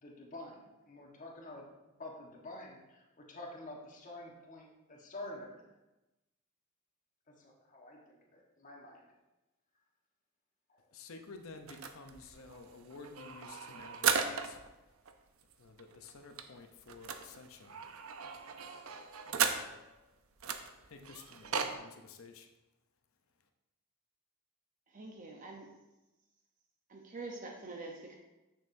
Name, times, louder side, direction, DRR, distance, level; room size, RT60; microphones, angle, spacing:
voice 1, 0.0-1.7 2.0-5.6 7.3-9.1 10.7-10.8, left 1 dB, 35° left, -1 dB, 1.3 m, -48 dB
voice 2, 10.9-14.6 15.6-17.8 19.3-19.5 20.9-22.5, left 4 dB, 70° left, 6 dB, 0.7 m, -52 dB
sound 1, 11.7-14.7 15.1-15.2 15.4-15.5 15.8-19.9 20.4-21.7, right 7 dB, 75° right, 0.6 m, -36 dB
voice 3, 24.9-25.7 26.9-28.2, right 3 dB, 35° right, 0 dB, 0.8 m, -45 dB
9.5 x 6.4 x 2.6 m, 1.0 s
head